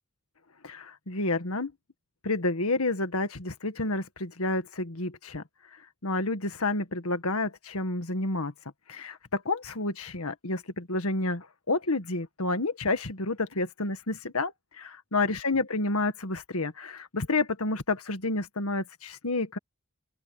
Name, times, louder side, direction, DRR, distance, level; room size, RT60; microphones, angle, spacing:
voice 1, 0.6-1.7 2.2-5.4 6.0-8.5 8.9-19.6, left 2 dB, 85° left, 1.8 m, -30 dB
open air
head